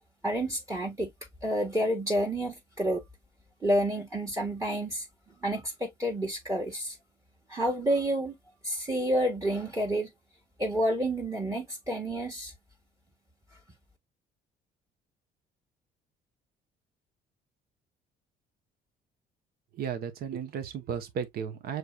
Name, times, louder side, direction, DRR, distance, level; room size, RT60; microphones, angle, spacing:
voice 1, 0.2-1.1 1.4-3.0 3.6-7.0 7.5-8.3 8.6-10.1 10.6-12.5, right 1 dB, 15° right, 1.5 m, -29 dB
voice 2, 19.8-21.8, right 7 dB, 65° right, 1.1 m, -34 dB
6.7 x 3.2 x 2.3 m
cardioid pair, 110°, 17 cm